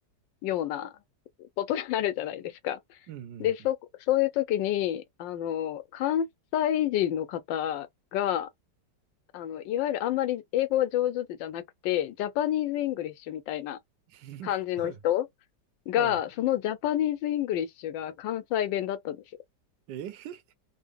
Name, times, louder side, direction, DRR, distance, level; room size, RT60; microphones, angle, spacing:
voice 1, 0.4-0.9 1.4-2.8 3.4-3.8 4.1-6.3 6.5-7.9 8.1-8.5 9.3-13.8 14.4-15.3 15.9-19.2, left 12 dB, 85° left, 1.4 m, -28 dB
voice 2, 3.1-3.5 14.1-15.0 16.0-16.2 19.9-20.4, right 10 dB, 80° right, 1.3 m, -41 dB
3.6 x 2.0 x 3.5 m
omnidirectional pair, 1.9 m